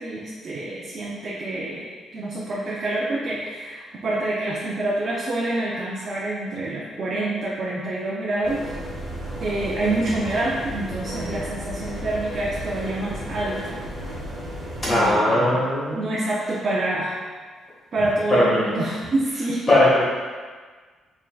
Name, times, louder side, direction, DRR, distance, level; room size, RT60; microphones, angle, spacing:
voice 1, 0.0-1.8 2.1-8.7 9.4-13.8 14.9-15.6 15.9-17.2 17.9-19.7, right 2 dB, 35° right, -5 dB, 0.5 m, -27 dB
sound 1, 8.4-15.1, equal, 15° right, 0.9 m, -34 dB
voice 2, 14.8-16.1 18.3-18.6 19.7-20.0, left 1 dB, 20° left, -8 dB, 1.5 m, -19 dB
4.4 x 3.6 x 2.3 m, 1.5 s
cardioid pair, 160°, 0 cm